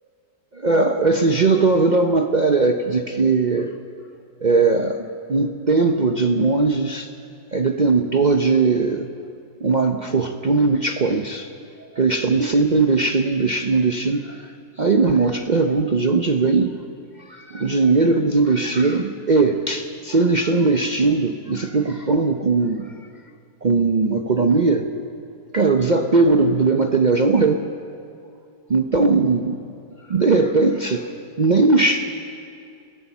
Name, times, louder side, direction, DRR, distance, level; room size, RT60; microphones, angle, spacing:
voice 1, 0.5-3.7 4.4-7.1 7.5-9.1 9.6-11.5 11.9-14.5 14.8-16.7 17.3-22.9 23.6-24.9 25.5-27.6 28.7-29.6 30.1-31.1 31.4-32.0, right 3 dB, 65° right, 5 dB, 0.4 m, -19 dB
23.0 x 15.5 x 7.2 m, 2.5 s
omnidirectional pair, 1.9 m